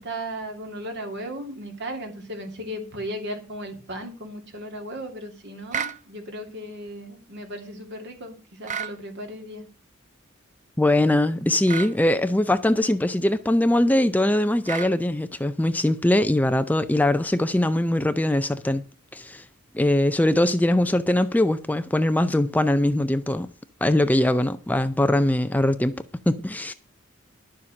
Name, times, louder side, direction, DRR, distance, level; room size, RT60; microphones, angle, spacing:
voice 1, 0.0-9.6, equal, 60° right, 2.7 m, -36 dB
sound 1, 5.7-6.0 8.6-9.0 11.7-11.9 14.6-14.9, right 7 dB, 35° right, 0.7 m, -30 dB
voice 2, 10.8-18.8 19.1-19.4 19.7-23.5 23.8-26.7, left 1 dB, 10° left, 0.5 m, -21 dB
11.5 x 7.1 x 6.3 m
head